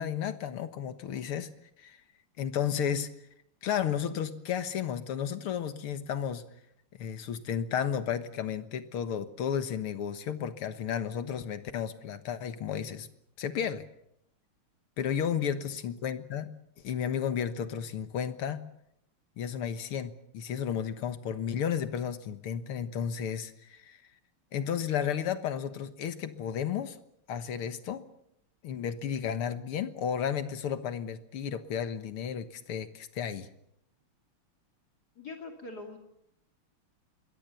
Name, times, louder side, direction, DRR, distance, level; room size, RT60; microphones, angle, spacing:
voice 1, 0.0-1.5 1.8-2.0 2.4-3.1 3.6-6.5 6.9-13.1 13.4-13.8 15.0-16.5 16.8-18.7 19.4-24.0 24.5-27.0 27.3-28.1 28.6-33.5, left 8 dB, 85° left, 11 dB, 2.2 m, -33 dB
voice 2, 35.2-36.0, left 3 dB, 45° left, 3 dB, 3.1 m, -43 dB
26.0 x 22.0 x 6.9 m, 0.77 s
omnidirectional pair, 2.4 m